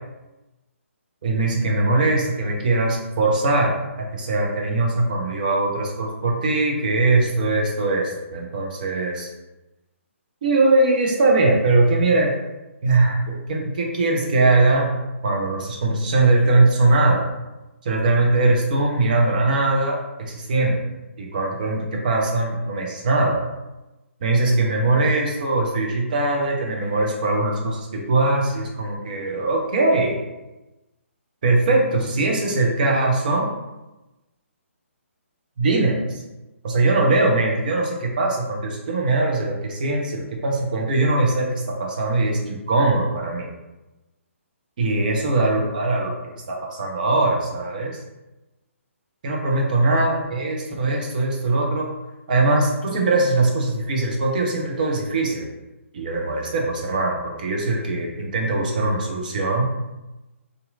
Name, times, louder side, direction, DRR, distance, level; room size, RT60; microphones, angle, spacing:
voice 1, 1.2-9.3 10.4-12.3 12.8-14.9 15.2-17.2 17.8-20.8 21.2-23.4 24.2-30.2 31.4-33.5 35.6-36.2 36.6-43.5 44.8-48.0 49.2-51.9 52.3-55.5 55.9-59.7, right 2 dB, 35° right, -1 dB, 0.5 m, -21 dB
2.7 x 2.4 x 2.3 m, 1.0 s
figure-of-eight pair, 135°, 7 cm